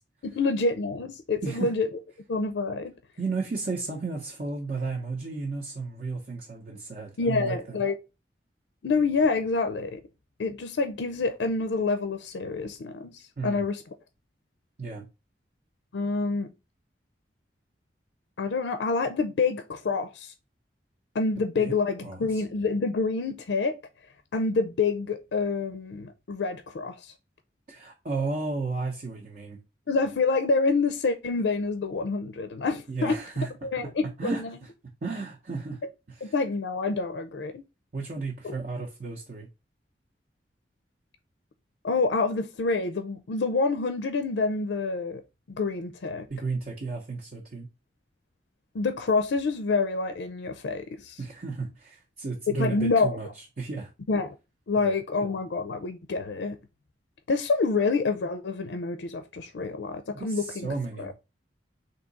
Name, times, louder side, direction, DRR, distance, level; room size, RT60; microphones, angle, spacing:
voice 1, 0.2-1.9 2.3-2.9 7.2-8.0 8.8-10.0 10.4-13.8 15.9-16.5 18.4-20.3 21.1-23.8 24.3-27.1 29.9-33.2 33.6-34.5 36.2-37.6 38.4-38.5 41.8-45.2 45.5-46.3 48.7-51.2 52.5-53.2 54.1-54.4 54.7-56.6 57.3-60.7 61.0-61.1, left 4 dB, 75° left, 0.4 m, -27 dB
voice 2, 3.2-7.8 13.4-13.6 14.8-15.0 21.6-21.7 22.0-22.4 27.7-29.6 32.9-33.5 34.2-34.7 35.0-35.8 36.1-36.3 37.9-39.5 46.3-47.7 51.2-53.9 54.7-54.9 60.1-61.1, right 3 dB, 50° right, 0.7 m, -33 dB
3.7 x 2.7 x 3.9 m
head